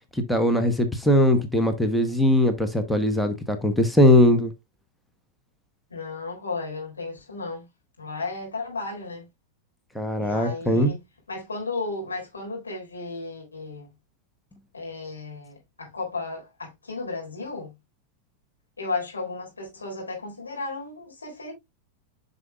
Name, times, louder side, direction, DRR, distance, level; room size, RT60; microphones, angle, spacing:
voice 1, 0.1-4.5 9.9-10.9, left 1 dB, 5° left, 1.1 m, -20 dB
voice 2, 5.9-7.7 8.0-9.3 10.2-13.9 14.7-17.7 18.8-21.5, left 3 dB, 75° left, 3.8 m, -34 dB
9.7 x 5.4 x 2.5 m
figure-of-eight pair, 90°, 0 cm